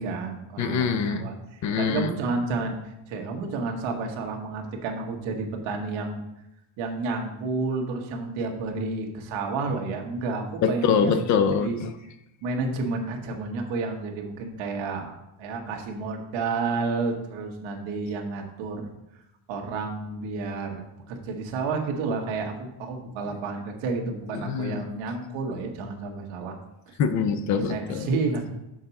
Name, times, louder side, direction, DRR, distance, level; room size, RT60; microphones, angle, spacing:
voice 1, 0.0-2.8 3.1-6.2 6.8-11.2 11.6-11.8 12.4-15.1 15.4-18.9 19.5-26.5 26.9-27.0 27.7-28.5, right 3 dB, 65° right, 2 dB, 1.4 m, -30 dB
voice 2, 0.6-1.3 1.6-2.1 10.6-11.9 24.4-24.9 27.0-28.1, left 6 dB, 40° left, 10 dB, 0.5 m, -24 dB
6.4 x 4.0 x 5.8 m, 0.88 s
cardioid pair, 175°, 49 cm